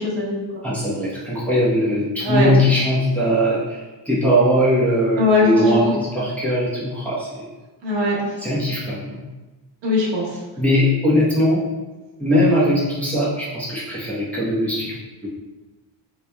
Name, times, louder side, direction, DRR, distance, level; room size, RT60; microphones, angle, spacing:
voice 1, 0.0-0.7 2.2-2.5 5.2-5.9 7.8-8.5 9.8-10.4, left 2 dB, 70° right, -5 dB, 1.2 m, -21 dB
voice 2, 0.6-7.3 8.4-9.2 10.6-11.6 12.2-14.9 15.2-15.3, equal, 5° left, -10 dB, 1.0 m, -20 dB
4.1 x 3.2 x 2.3 m, 1.2 s
cardioid pair, 125°, 44 cm